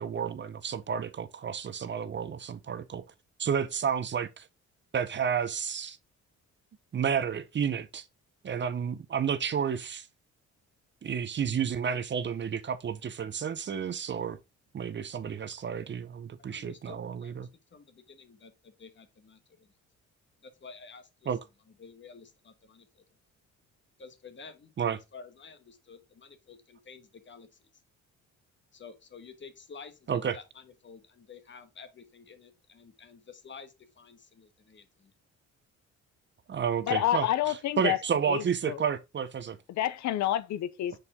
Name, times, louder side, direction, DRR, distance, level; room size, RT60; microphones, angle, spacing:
voice 1, 0.0-3.1 3.4-4.5 4.9-6.0 6.9-8.1 8.4-10.1 11.0-14.4 14.7-17.5 21.3-21.4 24.8-25.0 30.1-30.4 36.5-37.3 37.8-39.6, right 7 dB, 40° right, 0.6 m, -31 dB
voice 2, 16.4-19.7 20.4-21.4 21.7-23.2 24.0-24.7 25.1-27.7 28.7-35.1, left 5 dB, 40° left, 1.3 m, -51 dB
voice 3, 36.9-38.0 38.3-38.8 39.7-40.9, left 13 dB, 70° left, 0.5 m, -29 dB
6.4 x 4.3 x 3.6 m
cardioid pair, 90°, 30 cm